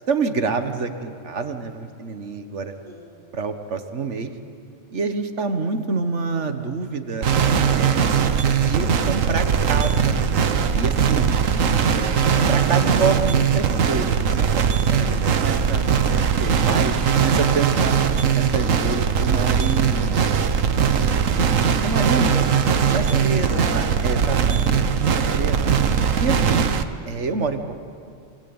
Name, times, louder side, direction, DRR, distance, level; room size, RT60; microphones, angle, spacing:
voice 1, 0.1-2.7 3.3-4.3 4.9-7.3 7.6-8.0 8.6-10.1 10.7-11.3 11.9-15.9 16.1-17.9 18.3-20.3 21.8-22.3 22.9-24.6 25.0-25.7 26.2-26.7 27.1-27.6, right 4 dB, 65° right, 7 dB, 1.8 m, -27 dB
sound 1, 7.2-26.8, right 7 dB, 80° right, 1.4 m, -20 dB
voice 2, 22.1-25.2, right 1 dB, 35° right, 0 dB, 5.3 m, -38 dB
27.5 x 21.5 x 8.9 m, 2.4 s
omnidirectional pair, 1.3 m